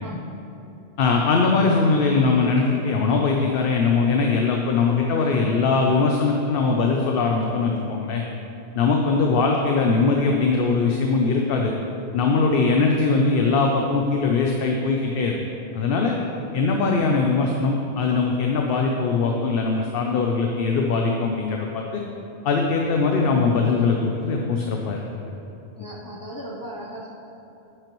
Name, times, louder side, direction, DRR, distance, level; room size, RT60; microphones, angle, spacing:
voice 1, 0.0-0.3 25.8-27.1, equal, 25° left, -4 dB, 0.6 m, -36 dB
voice 2, 1.0-8.2 8.7-11.7 12.1-15.4 15.7-16.2 16.5-22.0 22.4-25.3, left 4 dB, 65° left, 1 dB, 0.8 m, -21 dB
9.9 x 7.6 x 3.1 m, 3.0 s
omnidirectional pair, 1.1 m